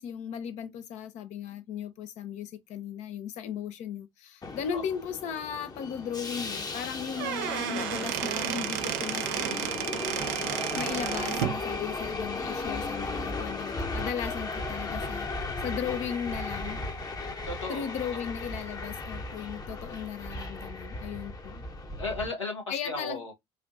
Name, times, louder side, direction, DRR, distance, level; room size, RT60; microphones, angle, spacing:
voice 1, 0.0-9.7 10.8-16.8 17.7-21.6 22.7-23.2, left 8 dB, 50° left, 0.7 m, -36 dB
Subway metro underground, 4.4-22.3, left 2 dB, 25° left, 0.9 m, -36 dB
Squeak / Wood, 7.0-11.6, right 12 dB, 60° right, 0.5 m, -32 dB
voice 2, 17.5-17.9 18.2-18.3 22.0-23.3, left 2 dB, 85° left, 1.4 m, -35 dB
5.0 x 2.5 x 2.5 m
figure-of-eight pair, 55°, 15 cm